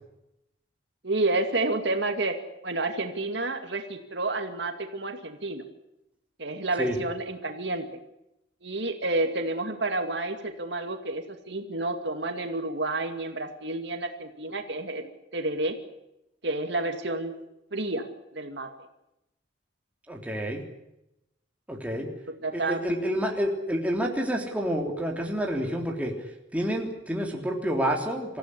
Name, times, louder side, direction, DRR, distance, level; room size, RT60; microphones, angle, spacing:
voice 1, 1.0-2.4 2.6-5.6 6.4-7.8 8.6-15.8 16.4-17.3 17.7-18.1 18.3-18.7 22.4-22.8, right 2 dB, 65° right, 5 dB, 2.4 m, -30 dB
voice 2, 20.1-20.6 21.7-22.1 22.5-26.1 26.5-28.4, equal, 10° right, 1 dB, 3.5 m, -28 dB
26.0 x 15.5 x 10.0 m, 0.87 s
head